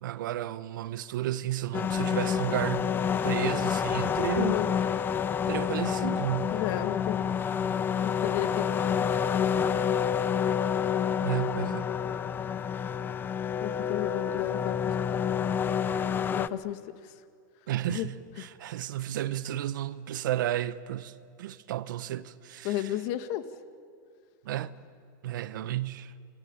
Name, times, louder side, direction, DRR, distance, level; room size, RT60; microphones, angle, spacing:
voice 1, 0.0-2.9 3.2-4.6 5.5-6.5 11.2-11.9 17.7-22.8 24.4-24.7 25.2-26.1, right 13 dB, 80° right, 1.1 m, -32 dB
sound 1, 1.7-16.5, left 8 dB, 20° left, 0.7 m, -28 dB
voice 2, 4.4-4.7 6.5-7.3 8.0-8.7 9.0-9.1 13.6-15.2 16.3-17.1 17.9-18.1 18.4-18.5 22.6-23.4, left 13 dB, 55° left, 1.9 m, -33 dB
27.0 x 22.5 x 9.0 m
supercardioid pair, 130°, 10 cm